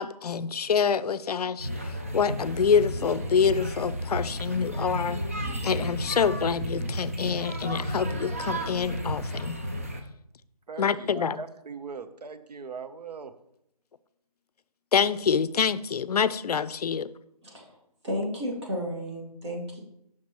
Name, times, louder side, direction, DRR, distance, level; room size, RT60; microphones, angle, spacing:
voice 1, 0.0-5.2 5.6-9.6 10.8-11.4 14.9-17.1, left 6 dB, 75° left, 16 dB, 0.4 m, -26 dB
sound 1, 1.6-10.0, equal, 20° right, 0.4 m, -32 dB
voice 2, 10.7-13.4, right 5 dB, 85° right, 11 dB, 0.7 m, -40 dB
voice 3, 17.4-17.8 18.0-19.8, equal, 45° right, -2 dB, 2.0 m, -33 dB
7.3 x 6.0 x 3.0 m, 0.77 s
hypercardioid pair, 170°, 20 cm